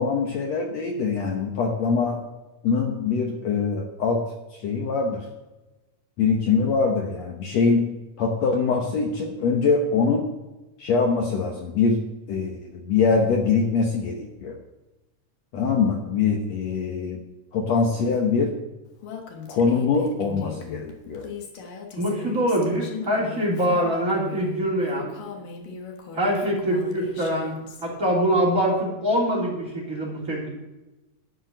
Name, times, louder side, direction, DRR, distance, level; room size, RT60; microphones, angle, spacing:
voice 1, 0.0-2.2 2.6-4.2 4.5-5.3 6.2-7.9 8.2-10.3 10.8-12.0 12.3-14.6 15.5-17.2 17.5-18.5 19.5-21.3, left 5 dB, 65° left, 1 dB, 2.0 m, -23 dB
Female speech woman speaking, 19.0-27.8, left 6 dB, 85° left, 3.1 m, -39 dB
voice 2, 22.0-25.1 26.1-27.5 27.8-30.6, equal, 25° right, -3 dB, 3.4 m, -24 dB
12.0 x 5.6 x 8.9 m, 1.0 s
omnidirectional pair, 3.7 m